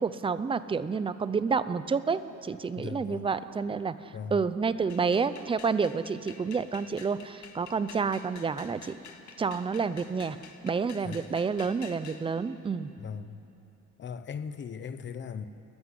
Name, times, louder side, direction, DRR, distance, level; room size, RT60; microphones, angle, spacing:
voice 1, 0.0-4.0 4.3-9.0 9.4-10.4 10.6-12.9, right 5 dB, 15° right, 13 dB, 0.5 m, -29 dB
voice 2, 2.8-3.3 4.1-4.4 11.0-11.3 13.0-13.4 14.0-15.5, left 6 dB, 40° left, 10 dB, 1.0 m, -38 dB
sound 1, 4.9-12.2, left 7 dB, 70° left, 1.9 m, -49 dB
28.0 x 14.5 x 9.8 m, 2.7 s
cardioid pair, 170°, 30 cm